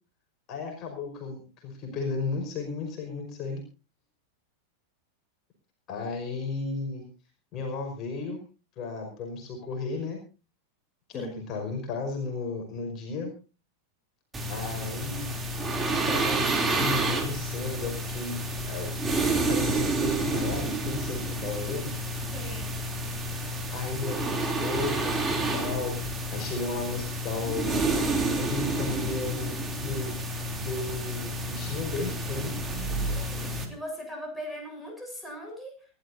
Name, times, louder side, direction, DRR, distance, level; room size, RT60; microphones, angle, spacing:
voice 1, 0.5-3.6 5.9-7.0 7.5-8.4 8.8-10.2 11.1-13.3 14.5-15.3 16.1-18.4 18.6-19.0 19.5-21.9 23.7-30.2 30.5-32.5, left 4 dB, 35° left, 2 dB, 5.2 m, -34 dB
sound 1, 14.3-33.7, right 2 dB, 15° right, 3.2 m, -29 dB
voice 2, 22.3-22.8 33.0-35.8, equal, ahead, -1 dB, 7.7 m, -40 dB
28.5 x 12.5 x 2.7 m, 0.33 s
figure-of-eight pair, 90°, 0 cm